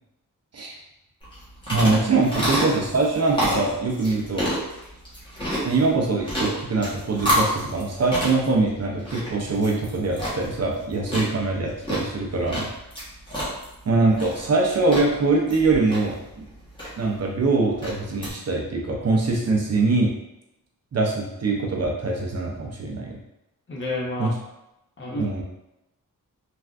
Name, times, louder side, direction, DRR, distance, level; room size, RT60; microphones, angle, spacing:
sound 1, 1.2-18.3, equal, 15° left, 0.9 m, -30 dB
voice 1, 1.7-4.5 5.6-12.7 13.9-16.2 17.0-20.1 20.9-23.2 24.2-24.3 25.1-25.4, right 3 dB, 45° right, -1 dB, 0.5 m, -23 dB
voice 2, 23.7-24.3 25.0-25.4, left 2 dB, 35° left, -3 dB, 0.6 m, -30 dB
3.3 x 2.4 x 2.4 m, 0.90 s
wide cardioid pair, 150°, 36 cm